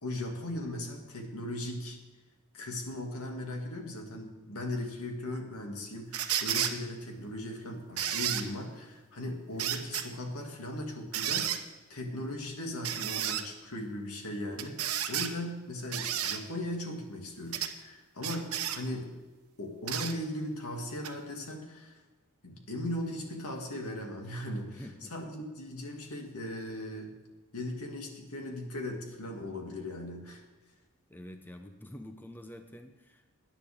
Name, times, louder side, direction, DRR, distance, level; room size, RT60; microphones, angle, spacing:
voice 1, 0.0-2.0 2.5-19.1 19.6-22.0 22.4-27.1 27.5-30.4, left 1 dB, 80° left, 2 dB, 2.3 m, -38 dB
sound 1, 6.1-6.7 8.0-8.4 9.6-10.1 11.1-11.6 12.8-13.4 14.6-15.3 15.9-16.4 17.5-17.7 18.2-18.8 19.9-20.1 21.0-21.1, right 10 dB, 75° right, 1.0 m, -32 dB
voice 2, 24.7-25.1 31.1-33.3, left 1 dB, 10° left, 6 dB, 0.7 m, -47 dB
20.0 x 9.9 x 3.6 m, 1.3 s
head